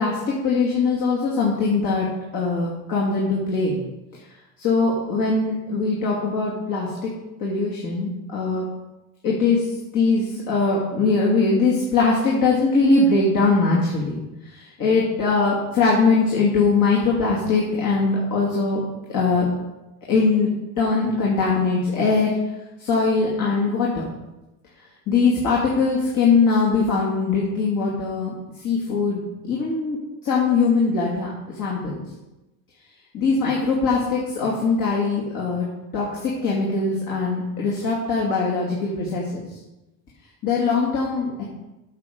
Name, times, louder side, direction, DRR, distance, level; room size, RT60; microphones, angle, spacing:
voice 1, 0.0-2.1 2.3-3.8 4.6-7.1 7.4-8.7 9.2-9.6 9.9-14.2 14.5-18.8 19.1-19.5 20.1-20.5 20.8-22.4 22.8-24.1 25.1-28.3 28.6-30.0 30.2-31.3 31.6-32.0 33.1-35.7 35.9-39.4 40.4-41.4, left 4 dB, 55° left, -4 dB, 2.4 m, -21 dB
8.2 x 6.6 x 5.3 m, 1.0 s
supercardioid pair, 85°, 40 cm